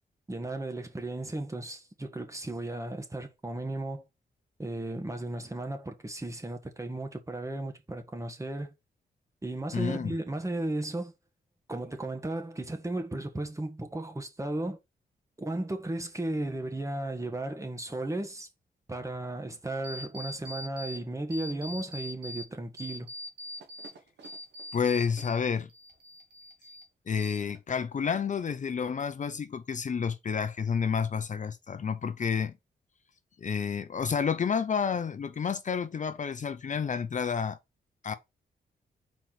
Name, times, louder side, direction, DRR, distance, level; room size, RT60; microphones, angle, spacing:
voice 1, 0.3-4.0 4.6-8.7 9.4-11.1 11.7-14.8 15.4-18.5 18.9-23.1, right 2 dB, 15° right, 1.5 m, -35 dB
voice 2, 9.7-10.1 24.7-25.7 27.1-32.5 33.4-37.6 38.0-38.1, left 6 dB, 45° left, 0.6 m, -30 dB
sound 1, 19.8-21.0 21.3-22.4 22.8-25.4 25.7-26.8 27.2-27.8, left 1 dB, 80° right, 1.6 m, -42 dB
4.6 x 4.4 x 5.9 m
cardioid pair, 80°, 17 cm